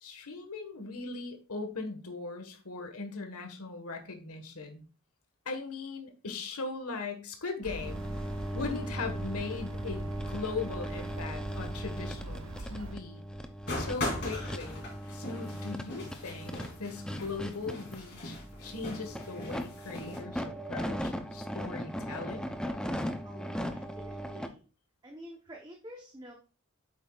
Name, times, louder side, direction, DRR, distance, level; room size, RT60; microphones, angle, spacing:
voice 1, 0.0-4.8 5.4-8.0 8.5-13.2 13.7-14.8 15.1-22.5, left 4 dB, 90° left, 5 dB, 1.5 m, -39 dB
sound 1, 7.6-13.0, right 2 dB, 75° right, 0.7 m, -43 dB
sound 2, 7.8-24.5, equal, 5° left, 0.5 m, -38 dB
sound 3, 13.7-20.2, left 1 dB, 50° left, 3.0 m, -39 dB
voice 2, 23.2-24.6 25.0-26.3, equal, 20° right, 1 dB, 0.9 m, -48 dB
8.3 x 7.7 x 2.4 m, 0.34 s
head